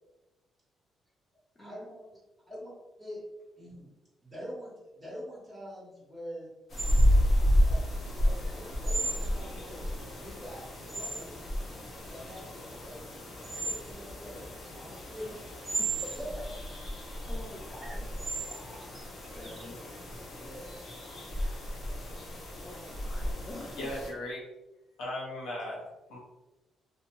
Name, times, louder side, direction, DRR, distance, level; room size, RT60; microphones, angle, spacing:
voice 1, 1.6-2.0 2.5-2.7 3.0-3.2 3.6-3.9 4.2-6.5 7.6-7.8 8.2-9.8 10.2-11.4 12.1-13.1 13.4-14.4 15.1-15.2 16.1-16.3 20.3-20.7, equal, ahead, -6 dB, 1.2 m, -45 dB
sound 1, 6.7-24.1, equal, 55° left, 0.8 m, -32 dB
sound 2, 6.8-20.2, right 3 dB, 25° right, 0.6 m, -39 dB
voice 2, 14.8-15.4 15.8-16.5 17.3-19.8 22.6-23.8, left 2 dB, 25° left, -3 dB, 0.5 m, -47 dB
voice 3, 23.8-24.4 25.0-26.2, left 1 dB, 85° left, -4 dB, 0.9 m, -37 dB
2.8 x 2.2 x 2.9 m, 1.0 s
cardioid pair, 90°, 0 cm